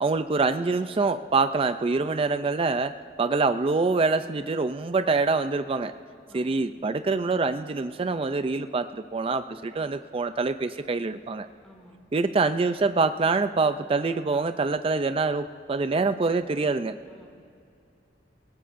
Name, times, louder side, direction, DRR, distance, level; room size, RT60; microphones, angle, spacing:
voice 1, 0.0-2.9 3.2-5.9 6.3-11.5 12.1-17.0, right 3 dB, 30° right, 10 dB, 0.4 m, -25 dB
voice 2, 6.3-6.6 11.6-12.0 17.0-17.3, equal, 5° left, -1 dB, 2.5 m, -53 dB
29.5 x 17.5 x 2.6 m, 2.5 s
head